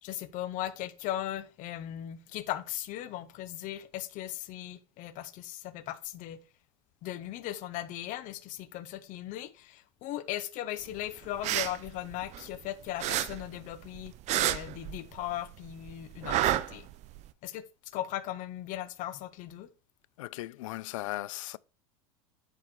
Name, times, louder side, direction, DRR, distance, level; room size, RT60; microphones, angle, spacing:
voice 1, 0.0-6.4 7.0-16.9 17.4-17.6 17.9-19.7, left 13 dB, 50° left, 1.0 m, -38 dB
sound 1, 11.2-12.7 13.0-15.4 15.6-17.3, right 13 dB, 45° right, 0.5 m, -30 dB
voice 2, 20.2-21.6, left 17 dB, 75° left, 0.4 m, -37 dB
7.6 x 4.7 x 4.3 m
hypercardioid pair, 100°, 17 cm